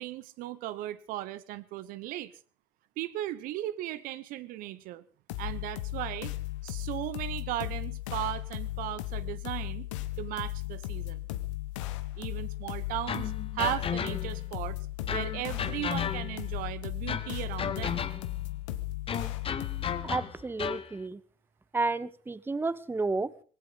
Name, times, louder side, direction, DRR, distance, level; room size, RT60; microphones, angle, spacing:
voice 1, 0.0-2.3 3.0-5.0 5.4-6.3 6.6-9.9 10.2-11.2 12.2-14.8 15.1-18.1, right 14 dB, 60° right, 1.0 m, -36 dB
sound 1, 5.3-20.1, left 16 dB, 75° left, 1.1 m, -36 dB
sound 2, 13.1-14.5 15.1-16.5 17.1-18.4 19.1-20.9, left 7 dB, 35° left, 1.3 m, -34 dB
voice 2, 20.0-21.2 21.7-23.3, right 3 dB, 15° right, 1.0 m, -31 dB
19.0 x 16.5 x 4.1 m
hypercardioid pair, 65°, 16 cm